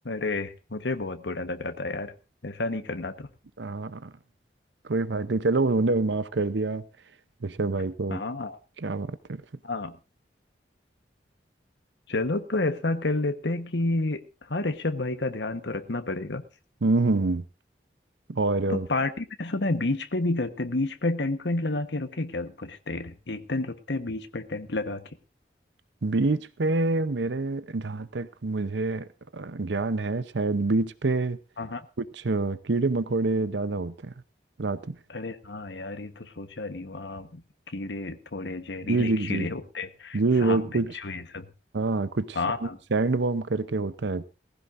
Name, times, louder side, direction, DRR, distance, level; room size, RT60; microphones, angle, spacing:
voice 1, 0.0-2.1 2.4-3.3 8.1-8.6 9.6-10.0 12.1-14.2 14.5-16.4 18.7-25.0 31.6-31.8 35.1-40.6 40.9-41.5 42.3-42.8, left 2 dB, 80° left, 1.2 m, -30 dB
voice 2, 3.6-4.1 4.9-6.8 7.4-8.2 8.8-9.4 16.8-17.5 18.3-18.9 26.0-29.1 29.3-31.4 32.0-34.1 34.6-35.0 38.8-39.5 40.1-41.0 41.7-44.2, right 3 dB, 85° right, 0.7 m, -26 dB
18.5 x 15.5 x 2.6 m
head